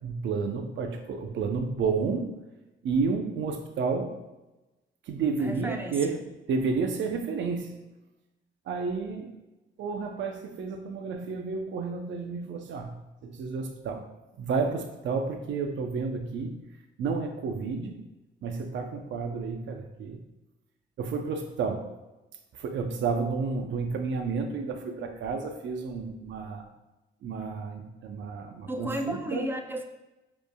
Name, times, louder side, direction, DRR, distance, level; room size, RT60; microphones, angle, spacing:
voice 1, 0.0-2.3 2.8-4.1 5.1-6.2 6.5-7.7 8.7-9.3 9.8-13.0 13.2-14.0 14.4-16.6 17.0-18.0 18.4-20.2 21.0-21.8 22.6-26.7 27.2-29.4, right 4 dB, 70° right, 5 dB, 0.6 m, -31 dB
voice 2, 5.4-6.2 28.7-29.8, right 1 dB, 10° right, 4 dB, 0.4 m, -34 dB
5.1 x 3.2 x 2.2 m, 1.0 s
cardioid pair, 90°, 20 cm